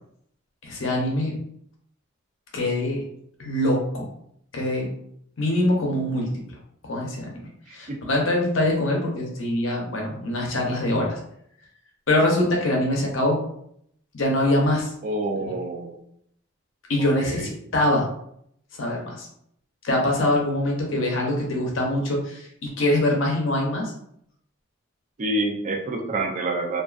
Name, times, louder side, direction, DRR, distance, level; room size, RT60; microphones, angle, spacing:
voice 1, 0.6-1.3 2.5-3.0 3.4-4.1 4.5-4.9 5.4-6.3 6.9-7.3 7.7-11.2 12.1-13.4 14.1-14.9 16.9-18.1 18.8-19.3 19.8-23.9, left 1 dB, 75° left, -1 dB, 0.7 m, -23 dB
voice 2, 7.7-8.2 15.0-16.0 17.2-17.5 25.2-26.8, right 2 dB, 40° right, 1 dB, 0.4 m, -28 dB
2.4 x 2.4 x 2.3 m, 0.70 s
head